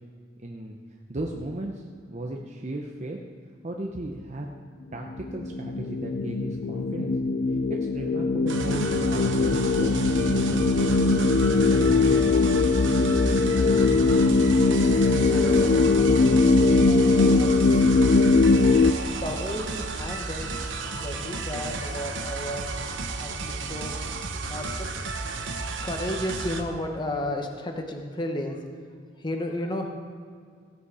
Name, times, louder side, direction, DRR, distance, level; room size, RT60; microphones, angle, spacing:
voice 1, 0.4-0.8 1.1-3.2 3.6-4.5 4.9-7.1 7.7-12.1, right 1 dB, 35° right, 0 dB, 0.8 m, -36 dB
sound 1, 5.1-18.9, left 3 dB, 55° left, 0.5 m, -21 dB
sound 2, 8.5-26.6, right 3 dB, 70° right, 0.9 m, -33 dB
voice 2, 15.2-24.0 24.4-25.0 25.3-28.6 29.2-29.9, left 1 dB, 25° left, 3 dB, 1.0 m, -34 dB
16.5 x 8.4 x 4.9 m, 2.1 s
head